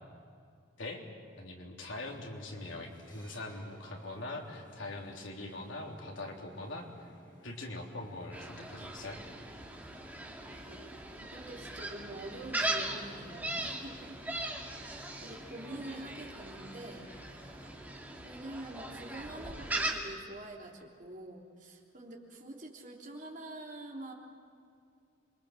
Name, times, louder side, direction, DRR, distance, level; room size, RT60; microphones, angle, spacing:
voice 1, 1.4-7.1 7.4-9.2, left 2 dB, 70° left, 1 dB, 3.5 m, -42 dB
sound 1, 2.0-18.1, equal, 20° left, 6.0 m, -57 dB
Gull seagull, 8.3-19.9, right 2 dB, 10° right, 2.4 m, -39 dB
voice 2, 11.2-14.3 14.8-17.1 18.2-24.1, right 1 dB, 40° right, 0 dB, 3.4 m, -46 dB
27.5 x 23.0 x 7.7 m, 2.4 s
head